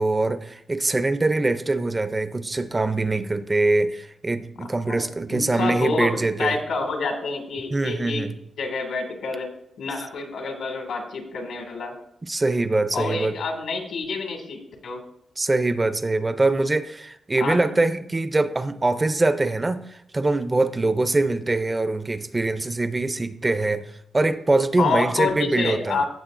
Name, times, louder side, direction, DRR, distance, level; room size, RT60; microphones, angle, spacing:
voice 1, 0.0-6.6 7.7-8.3 12.2-13.3 15.4-23.8 24.1-26.0, right 2 dB, 20° right, 11 dB, 0.4 m, -23 dB
voice 2, 5.3-8.3 8.6-9.5 9.8-11.9 12.9-15.0 17.4-17.7 24.8-26.1, left 4 dB, 90° left, 3 dB, 1.9 m, -28 dB
15.0 x 7.0 x 2.5 m, 0.75 s
wide cardioid pair, 170°, 0 cm